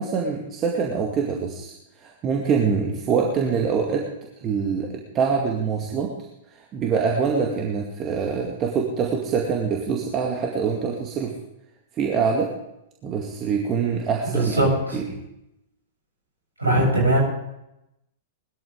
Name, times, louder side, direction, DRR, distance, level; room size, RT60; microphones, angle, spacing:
voice 1, 0.0-6.2 6.5-11.3 11.9-12.5 13.0-15.1, right 6 dB, 30° right, 0 dB, 2.2 m, -25 dB
voice 2, 14.3-15.0 16.6-17.2, right 1 dB, 85° right, -2 dB, 7.5 m, -20 dB
20.0 x 13.5 x 3.8 m, 0.85 s
figure-of-eight pair, 100°, 0 cm